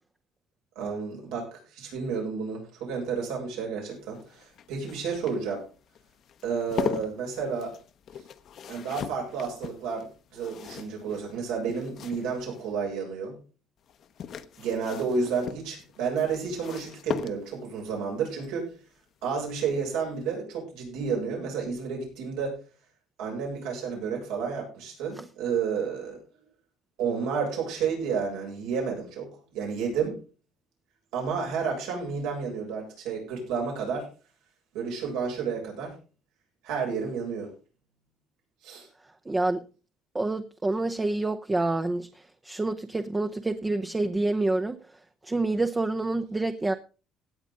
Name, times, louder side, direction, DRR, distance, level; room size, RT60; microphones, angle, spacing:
voice 1, 0.8-5.6 6.4-7.7 8.7-10.1 10.3-13.3 14.6-18.7 19.2-22.6 23.2-26.2 27.0-29.3 29.5-30.2 31.1-34.1 34.7-36.0 36.6-37.5 38.6-38.9, right 5 dB, 90° right, 7.2 m, -31 dB
sound 1, 3.9-12.7 13.9-17.8 19.4-19.7 20.0-20.1, left 8 dB, 55° left, 1.0 m, -39 dB
voice 2, 39.3-39.6 40.1-42.1 42.4-44.8 45.2-46.7, right 2 dB, 15° right, 0.7 m, -27 dB
17.0 x 8.9 x 3.8 m
cardioid pair, 115°, 0 cm